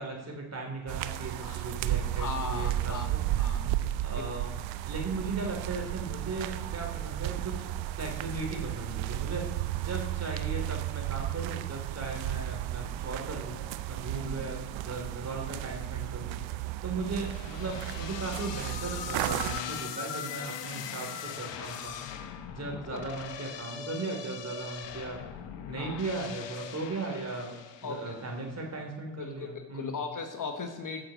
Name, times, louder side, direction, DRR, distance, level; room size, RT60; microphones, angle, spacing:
voice 1, 0.0-3.2 4.0-4.6 4.8-30.0, right 3 dB, 35° right, 2 dB, 3.2 m, -37 dB
sound 1, 0.9-19.6, right 14 dB, 75° right, 0.7 m, -34 dB
voice 2, 2.1-3.1 3.4-3.8 4.2-4.3 14.1-14.5 22.6-23.1 25.8-26.0 27.8-28.2 29.2-29.5 29.7-31.0, left 5 dB, 40° left, 6 dB, 1.3 m, -38 dB
sound 2, 17.1-28.4, left 8 dB, 65° left, 1.1 m, -40 dB
14.5 x 6.3 x 5.1 m, 1.2 s
supercardioid pair, 65°, 47 cm